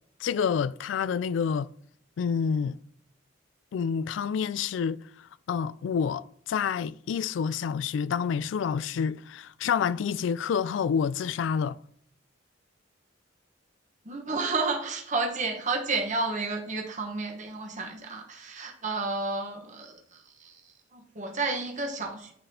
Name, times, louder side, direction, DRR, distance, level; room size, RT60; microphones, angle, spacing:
voice 1, 0.2-1.7 2.2-2.8 3.7-5.0 5.5-11.8, left 7 dB, 70° left, 0.3 m, -28 dB
voice 2, 14.1-19.9 20.4-20.5 20.9-22.3, right 3 dB, 40° right, 1.1 m, -31 dB
9.5 x 4.0 x 2.8 m
head